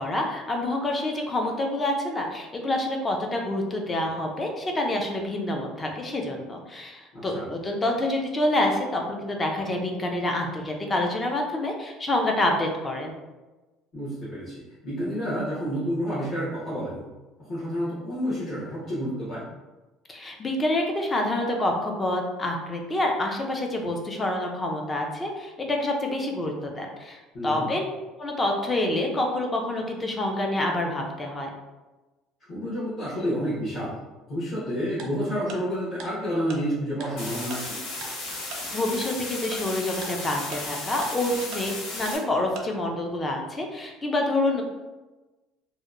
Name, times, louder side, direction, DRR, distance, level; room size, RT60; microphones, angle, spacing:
voice 1, 0.0-13.1 20.1-27.8 28.2-31.5 38.4-44.6, left 1 dB, 20° left, 2 dB, 0.4 m, -27 dB
voice 2, 7.1-7.5 13.9-17.0 17.4-19.4 27.3-27.7 32.5-34.0 34.3-37.8, equal, 40° left, -11 dB, 0.9 m, -29 dB
Tick-tock, 35.0-35.1 35.5-35.6 36.0-36.1 36.5-36.6 37.0-37.1 37.5-37.6 38.0-38.1 38.5-38.6 39.0-39.1 39.5-39.6 40.0-40.1 40.5-40.6 41.0-41.1 41.5-41.6 42.1-42.2 42.6-42.7, right 4 dB, 60° right, 0.4 m, -38 dB
sound 1, 37.2-42.2, left 2 dB, 90° left, 1.2 m, -35 dB
2.8 x 2.1 x 2.4 m, 1.1 s
cardioid pair, 145°, 0 cm